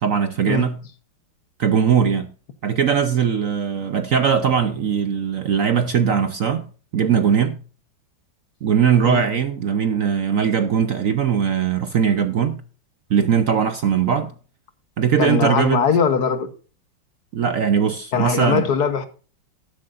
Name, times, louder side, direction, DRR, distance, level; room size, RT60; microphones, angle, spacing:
voice 1, 0.0-0.8 1.6-2.3 2.6-7.6 8.6-12.6 13.1-14.3 15.0-15.8 17.3-18.7, right 7 dB, 60° right, 0.9 m, -20 dB
voice 2, 15.2-16.5 18.1-19.1, left 6 dB, 60° left, 1.5 m, -20 dB
13.5 x 11.5 x 2.5 m
omnidirectional pair, 2.1 m